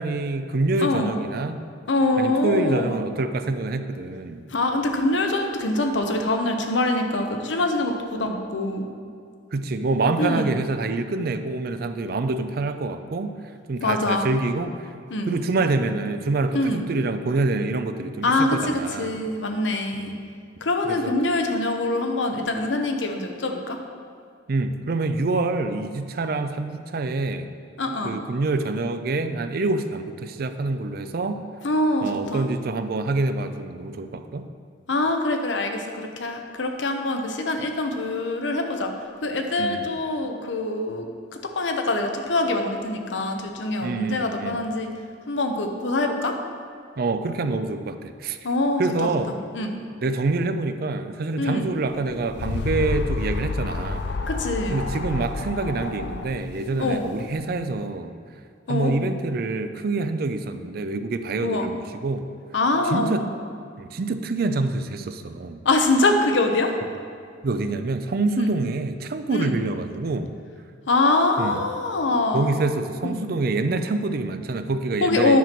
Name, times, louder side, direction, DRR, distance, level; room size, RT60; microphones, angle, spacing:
voice 1, 0.0-1.6 2.2-4.4 9.5-13.3 13.7-14.7 15.3-19.2 19.9-20.1 20.8-21.1 24.5-27.5 28.0-31.4 32.0-34.5 39.6-39.8 43.8-44.6 47.0-48.4 48.8-49.3 50.0-54.1 54.7-58.2 58.7-62.3 62.9-63.2 63.8-65.6 67.4-70.3 71.4-71.6 72.3-75.4, right 3 dB, 55° right, 9 dB, 0.4 m, -26 dB
voice 2, 0.8-1.1 1.9-3.0 4.5-8.9 10.2-10.5 13.8-14.3 15.1-15.4 16.5-16.8 18.2-20.1 20.6-23.8 27.8-28.2 31.6-32.5 34.9-38.9 39.2-44.9 45.3-46.3 48.4-49.1 49.5-49.7 51.4-51.7 54.3-54.8 56.8-57.1 58.7-58.9 61.4-61.7 62.5-63.3 65.6-66.7 68.4-68.5 69.3-69.6 70.9-72.5 73.0-73.2 75.0-75.4, left 2 dB, 85° left, 4 dB, 0.8 m, -24 dB
sound 1, 51.9-57.5, left 3 dB, 65° left, 0.5 m, -30 dB
9.4 x 5.9 x 4.4 m, 2.2 s
head